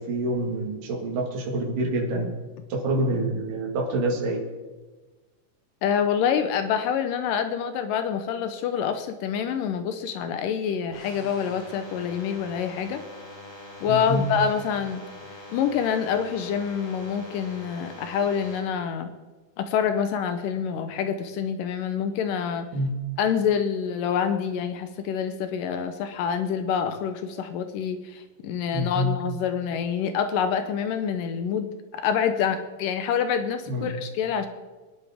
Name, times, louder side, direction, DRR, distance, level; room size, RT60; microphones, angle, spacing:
voice 1, 0.0-2.4 2.7-4.5 13.9-14.3 22.7-22.9 28.7-29.1 33.7-33.9, right 1 dB, 80° right, 0 dB, 3.5 m, -27 dB
voice 2, 5.8-13.0 13.8-15.0 15.5-19.1 19.6-22.7 23.2-34.5, left 7 dB, 85° left, 8 dB, 2.5 m, -26 dB
sound 1, 10.9-18.6, left 1 dB, 50° left, 4.6 m, -43 dB
22.5 x 11.0 x 3.5 m, 1.2 s
omnidirectional pair, 3.8 m